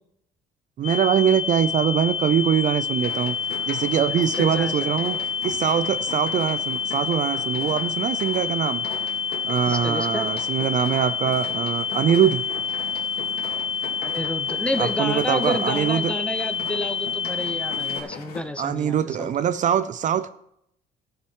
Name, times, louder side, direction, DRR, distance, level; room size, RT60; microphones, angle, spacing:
sound 1, 0.8-18.0, left 6 dB, 40° left, 1.0 m, -28 dB
voice 1, 0.8-3.4 3.7-8.9 9.4-12.4 14.8-16.1 18.6-20.3, right 9 dB, 50° right, 0.5 m, -23 dB
sound 2, 3.0-18.4, left 6 dB, 65° left, 2.2 m, -39 dB
voice 2, 4.1-4.9 9.7-10.3 14.0-19.3, left 1 dB, 5° left, 1.0 m, -30 dB
14.5 x 6.6 x 4.7 m
cardioid pair, 110°, 17 cm